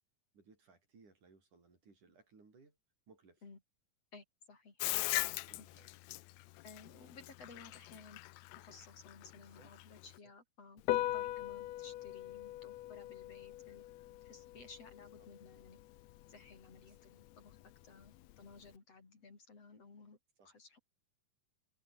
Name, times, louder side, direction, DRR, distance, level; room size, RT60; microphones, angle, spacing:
voice 1, 0.3-2.8 3.1-3.4 5.5-5.9 9.3-9.8 10.0-10.3 15.0-15.3 16.8-17.0 20.4-20.5, right 4 dB, 65° right, 7.5 m, -64 dB
voice 2, 4.1-5.0 6.6-8.2 8.6-10.8 11.1-13.8 14.2-15.8 16.3-17.6 17.8-20.2 20.5-20.8, left 4 dB, 45° left, 5.5 m, -57 dB
Bathtub (filling or washing), 4.8-10.2, left 19 dB, 85° left, 1.5 m, -39 dB
Piano, 10.8-18.8, left 15 dB, 70° left, 1.7 m, -42 dB
omnidirectional pair, 3.8 m